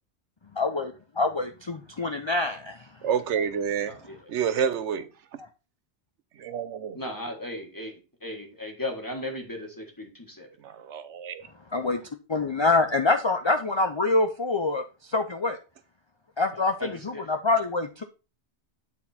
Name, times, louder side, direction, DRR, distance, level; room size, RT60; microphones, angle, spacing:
voice 1, 0.6-2.8 11.7-12.0 12.3-14.9 15.1-15.6 16.4-18.0, left 3 dB, 35° left, 0.4 m, -25 dB
voice 2, 3.0-3.9 4.3-5.4 6.4-7.0 10.6-11.5, right 7 dB, 85° right, 1.0 m, -29 dB
voice 3, 6.9-7.9 8.2-10.5 16.5-17.3, left 1 dB, 20° left, 1.5 m, -36 dB
8.7 x 4.2 x 4.2 m
omnidirectional pair, 1.2 m